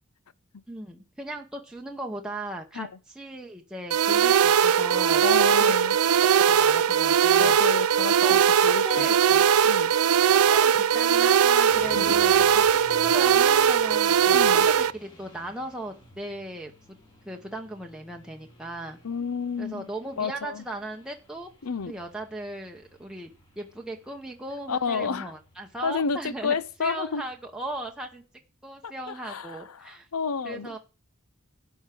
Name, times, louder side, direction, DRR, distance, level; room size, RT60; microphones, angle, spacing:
voice 1, 0.7-5.2 5.6-5.9 6.2-7.6 8.2-8.4 8.8-9.2 10.5-17.0 17.3-19.0 19.6-21.5 21.9-23.3 23.6-28.2 28.6-30.1 30.4-30.8, right 1 dB, 5° right, 0.8 m, -37 dB
sound 1, 3.9-14.9, right 8 dB, 85° right, 0.5 m, -20 dB
voice 2, 5.2-6.0 7.4-9.1 9.3-9.9 11.9-12.2 14.3-14.7 19.0-19.9 20.2-20.6 21.6-22.0 24.7-25.3 25.8-27.2 28.8-30.8, left 5 dB, 85° left, 0.7 m, -31 dB
sound 2, 11.7-28.2, equal, 20° left, 4.7 m, -52 dB
11.5 x 4.7 x 8.4 m
head